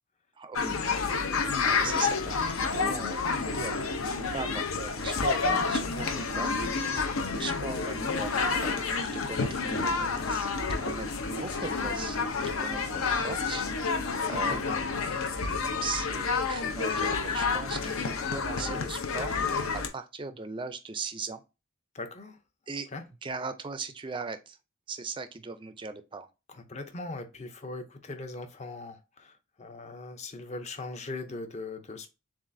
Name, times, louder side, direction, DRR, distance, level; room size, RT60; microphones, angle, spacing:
voice 1, 0.4-0.9 1.6-6.5 6.8-14.6 15.8-21.4 22.7-22.9 23.2-24.6 24.9-26.3, right 4 dB, 25° right, 0.4 m, -39 dB
sound 1, 0.5-19.9, left 4 dB, 75° left, 0.7 m, -29 dB
voice 2, 14.2-14.8 18.6-18.9 21.9-22.4 22.9-23.0 26.5-32.1, left 2 dB, 30° left, 0.6 m, -40 dB
7.1 x 2.5 x 2.6 m
head